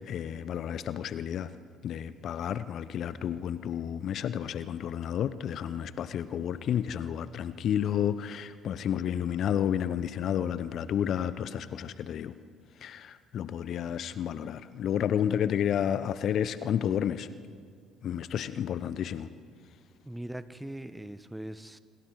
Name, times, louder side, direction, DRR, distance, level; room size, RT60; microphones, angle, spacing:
voice 1, 0.0-1.5 1.8-12.3 12.8-17.3 18.0-19.3, left 9 dB, 55° left, 15 dB, 0.8 m, -31 dB
voice 2, 20.0-21.8, right 1 dB, 5° right, 13 dB, 1.1 m, -40 dB
27.0 x 24.5 x 4.8 m, 2.1 s
figure-of-eight pair, 55°, 0 cm